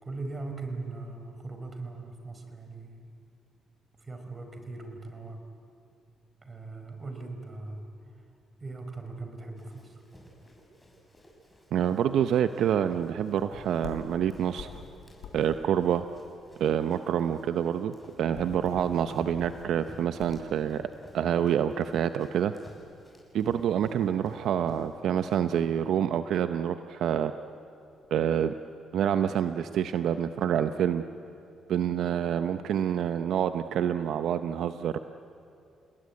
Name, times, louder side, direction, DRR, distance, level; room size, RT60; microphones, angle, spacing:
voice 1, 0.0-3.1 4.0-5.4 6.4-7.9 8.6-10.0, right 3 dB, 30° right, 5 dB, 4.9 m, -40 dB
Run, 9.6-25.7, equal, 10° left, 7.0 m, -53 dB
voice 2, 11.7-14.7 15.3-16.0 16.6-20.9 21.1-22.5 23.3-27.3 28.1-28.5 28.9-31.0 31.7-35.0, right 9 dB, 75° right, 10 dB, 0.7 m, -27 dB
sound 1, 13.2-16.9 17.2-17.3 17.6-17.7 18.0-20.6, left 7 dB, 80° left, 4.0 m, -45 dB
29.5 x 19.5 x 9.6 m, 2.6 s
cardioid pair, 90°, 0 cm